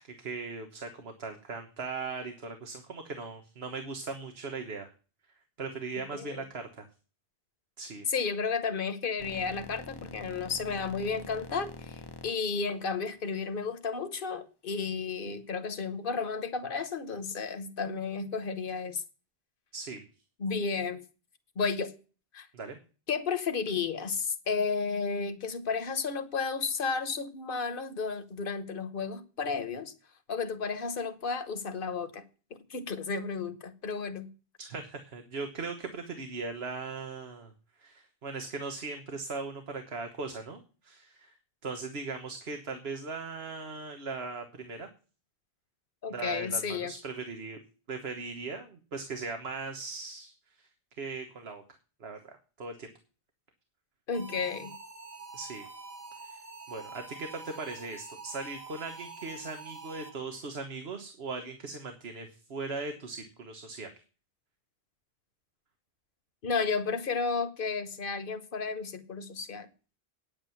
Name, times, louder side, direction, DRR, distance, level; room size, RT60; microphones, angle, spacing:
voice 1, 0.0-4.9 5.6-6.9 7.8-8.1 19.7-20.0 22.5-22.8 34.6-37.5 37.8-41.3 41.6-44.9 46.1-47.6 47.9-50.3 50.6-50.7 51.0-51.6 52.0-52.9 55.3-55.6 56.2-56.4 56.7-63.9, right 4 dB, 75° right, 1.5 m, -39 dB
voice 2, 8.1-19.0 20.4-21.0 21.6-21.9 22.3-22.5 23.1-29.9 30.3-32.2 32.7-34.3 46.0-46.9 54.1-54.7 66.4-69.7, left 5 dB, 60° left, 1.3 m, -32 dB
sound 1, 9.2-13.7, left 3 dB, 30° left, 0.6 m, -46 dB
sound 2, 54.1-60.4, right 3 dB, 40° right, 1.3 m, -46 dB
9.3 x 8.8 x 7.1 m
omnidirectional pair, 1.0 m